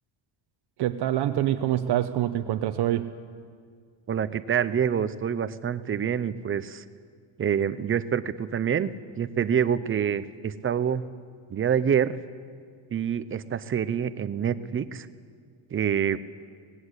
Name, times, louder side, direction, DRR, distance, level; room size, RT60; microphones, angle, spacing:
voice 1, 0.8-3.1, right 12 dB, 55° right, 8 dB, 0.9 m, -25 dB
voice 2, 4.1-6.8 7.4-8.9 9.2-11.0 11.5-12.2 12.9-15.1 15.7-16.2, right 8 dB, 25° right, 13 dB, 0.6 m, -26 dB
24.5 x 19.5 x 8.2 m, 2.1 s
cardioid pair, 155°, 48 cm